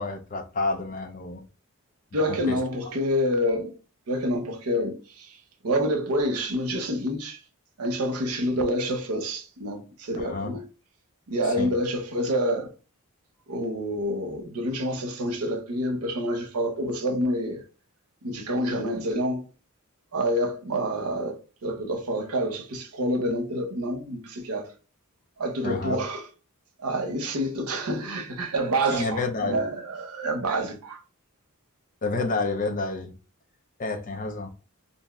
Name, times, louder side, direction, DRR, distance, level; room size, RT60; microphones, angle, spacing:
voice 1, 0.0-1.4 2.3-2.6 10.2-10.5 11.5-11.7 25.6-26.0 28.9-29.6 32.0-33.1 33.8-34.5, left 3 dB, 35° left, 0.5 m, -29 dB
voice 2, 2.1-3.7 4.1-5.4 5.6-7.4 7.8-10.6 11.3-12.7 13.5-17.6 18.2-19.5 20.1-24.7 25.4-26.3 26.8-31.0, equal, 85° right, 0.7 m, -27 dB
2.6 x 2.0 x 3.4 m
head